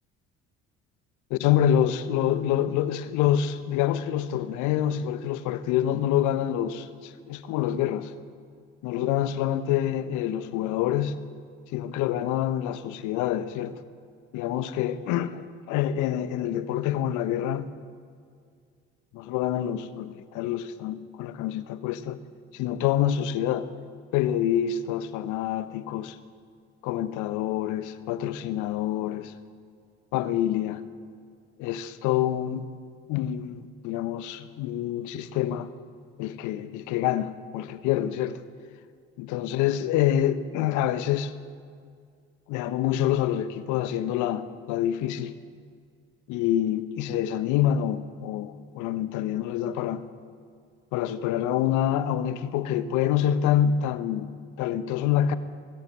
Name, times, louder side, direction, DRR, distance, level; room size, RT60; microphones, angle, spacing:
voice 1, 1.3-8.1 8.8-11.1 11.7-13.7 14.3-17.7 19.1-22.2 22.5-23.7 24.1-26.2 26.8-29.3 30.1-30.8 31.6-32.7 33.1-35.7 36.2-38.4 39.2-41.3 42.5-45.3 46.3-50.0 50.9-54.3 54.6-55.4, left 11 dB, 65° left, 1.2 m, -26 dB
22.5 x 14.5 x 7.8 m
hypercardioid pair, 55°, 33 cm